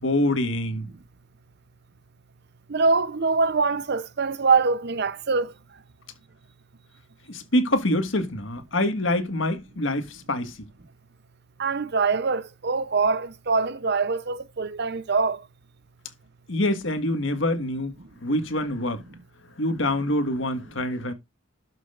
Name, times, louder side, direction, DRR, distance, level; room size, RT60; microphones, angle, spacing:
voice 1, 0.0-0.9 7.3-10.6 16.5-17.9 18.2-19.0 19.6-21.1, left 1 dB, 70° left, 1.7 m, -25 dB
voice 2, 2.7-5.5 11.6-15.4, right 4 dB, 55° right, 0.7 m, -23 dB
12.0 x 6.3 x 2.5 m
head